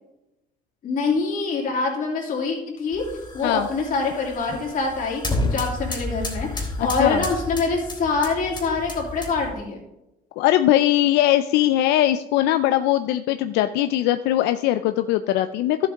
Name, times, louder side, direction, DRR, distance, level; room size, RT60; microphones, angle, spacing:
voice 1, 0.8-3.0 3.3-9.8, left 4 dB, 55° left, -1 dB, 2.9 m, -25 dB
sound 1, 2.9-9.6, left 2 dB, 25° left, 2.7 m, -31 dB
voice 2, 6.8-7.2 10.4-15.8, left 13 dB, 90° left, 10 dB, 0.4 m, -20 dB
12.0 x 7.9 x 3.6 m, 0.90 s
cardioid pair, 110°, 17 cm